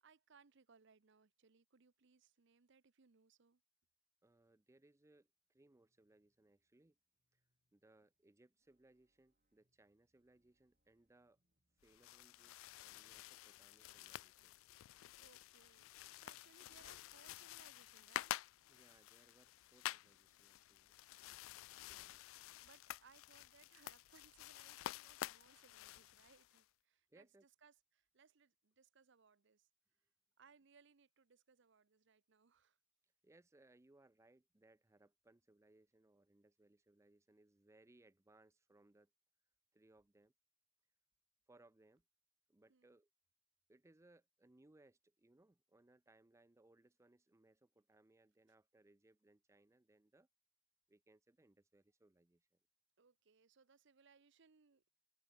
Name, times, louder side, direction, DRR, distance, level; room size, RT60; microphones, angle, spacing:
voice 1, 0.0-3.6 15.2-18.3 22.6-29.7 30.4-32.8 42.7-42.9 53.0-54.8, right 5 dB, 65° right, 0.8 m, -69 dB
voice 2, 4.2-7.0 7.3-7.4 7.7-11.4 11.8-14.6 18.7-21.0 21.9-22.2 27.1-27.5 33.2-39.1 39.7-40.3 41.5-42.0 42.5-43.1 43.7-50.3 50.9-52.6, right 2 dB, 15° right, 0.5 m, -70 dB
sound 1, 5.3-18.4, equal, 45° right, 7.4 m, -91 dB
sound 2, 11.8-26.6, left 13 dB, 80° left, 0.3 m, -50 dB
head